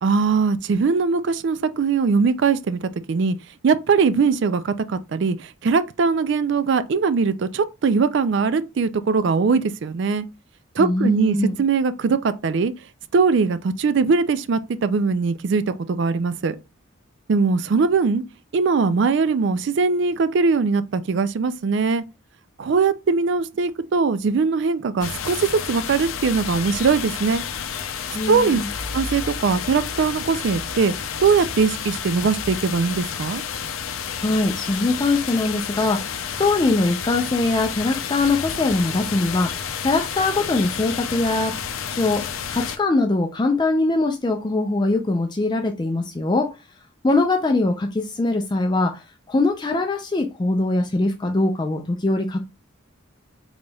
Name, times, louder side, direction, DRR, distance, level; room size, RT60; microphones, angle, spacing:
voice 1, 0.0-3.4 3.6-10.3 10.8-12.7 13.1-16.6 17.3-18.2 18.5-22.0 22.6-27.4 28.3-28.6 28.9-30.9 31.2-33.4, right 5 dB, 60° right, 0.4 m, -21 dB
voice 2, 10.8-11.6 28.1-28.7 34.2-41.6 41.9-46.5 47.0-52.4, left 2 dB, 20° left, 0.4 m, -22 dB
sound 1, 25.0-42.8, left 7 dB, 80° left, 0.5 m, -30 dB
3.9 x 3.3 x 2.3 m
head